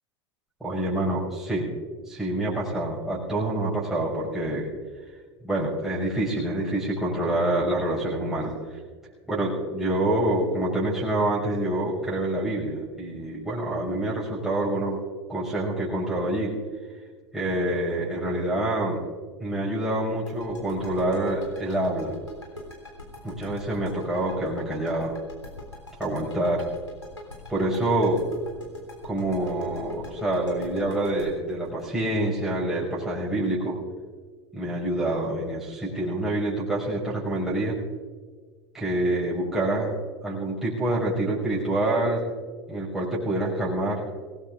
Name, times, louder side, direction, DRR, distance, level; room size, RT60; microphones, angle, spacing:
voice 1, 0.6-1.7 2.0-4.7 5.4-8.5 9.3-15.0 15.3-16.5 17.3-19.0 19.4-22.2 23.2-25.1 26.0-26.7 27.5-28.2 29.0-33.8 34.5-37.8 38.7-39.9 40.2-42.2 42.7-44.0, right 1 dB, ahead, -6 dB, 5.9 m, -26 dB
sound 1, 20.3-33.0, left 2 dB, 90° left, 3.7 m, -42 dB
25.0 x 19.0 x 2.6 m, 1.5 s
figure-of-eight pair, 80°, 14 cm